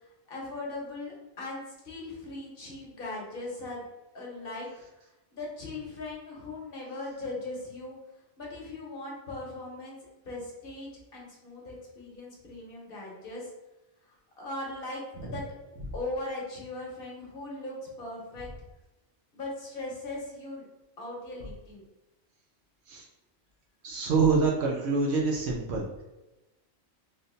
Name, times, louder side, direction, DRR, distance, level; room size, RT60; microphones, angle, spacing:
voice 1, 0.3-3.9 4.1-4.7 5.3-8.0 8.4-10.0 10.2-13.5 14.4-15.4 15.9-18.5 19.3-20.6 21.0-21.8, left 2 dB, 55° left, -3 dB, 1.1 m, -39 dB
voice 2, 23.8-26.0, right 4 dB, 70° right, -2 dB, 0.9 m, -26 dB
3.5 x 2.6 x 2.6 m, 1.0 s
omnidirectional pair, 1.2 m